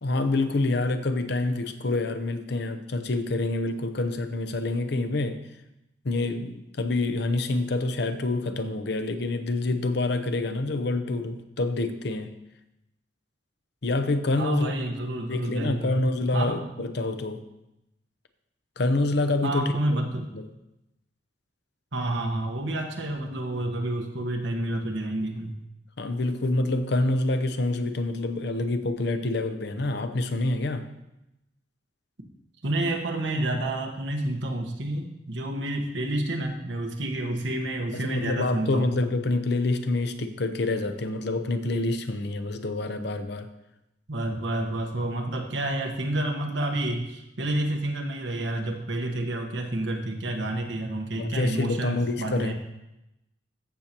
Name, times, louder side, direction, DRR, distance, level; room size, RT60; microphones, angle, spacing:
voice 1, 0.0-5.5 6.0-12.4 13.8-14.7 15.3-17.4 18.8-19.7 20.3-20.5 26.0-30.9 37.9-43.5 51.2-52.5, left 2 dB, 65° left, 9 dB, 0.7 m, -27 dB
voice 2, 14.4-16.0 16.3-16.6 19.4-20.3 21.9-25.6 32.6-39.0 44.1-52.5, right 1 dB, 90° right, 3 dB, 1.3 m, -29 dB
14.5 x 6.6 x 2.9 m, 0.90 s
head